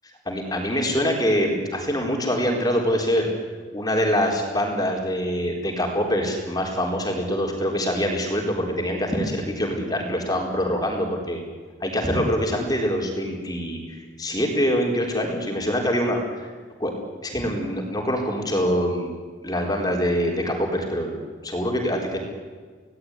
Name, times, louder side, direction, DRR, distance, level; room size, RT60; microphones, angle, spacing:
voice 1, 0.3-3.3 3.7-11.4 11.8-16.5 16.8-16.9 17.2-19.1 19.4-21.1 21.4-22.2, equal, 20° left, 1 dB, 4.2 m, -24 dB
26.5 x 18.5 x 9.9 m, 1.5 s
head